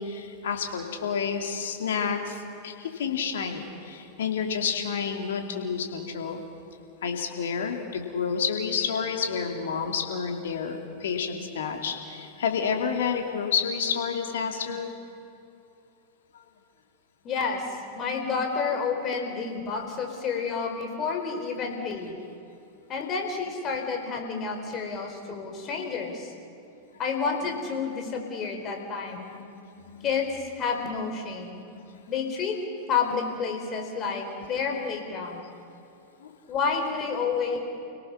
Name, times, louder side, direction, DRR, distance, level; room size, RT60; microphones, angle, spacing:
voice 1, 0.0-6.4 7.0-14.9 16.3-16.4 19.4-19.5 29.3-29.4 29.8-30.1 31.7-31.8 36.2-36.3, left 6 dB, 70° left, 3 dB, 2.8 m, -30 dB
voice 2, 17.2-22.2 22.9-26.3 27.0-29.3 30.0-31.6 32.1-32.6 32.9-35.4 36.5-37.6, left 5 dB, 35° left, 3 dB, 4.6 m, -30 dB
30.0 x 18.0 x 5.8 m, 2.8 s
figure-of-eight pair, 95°, 0 cm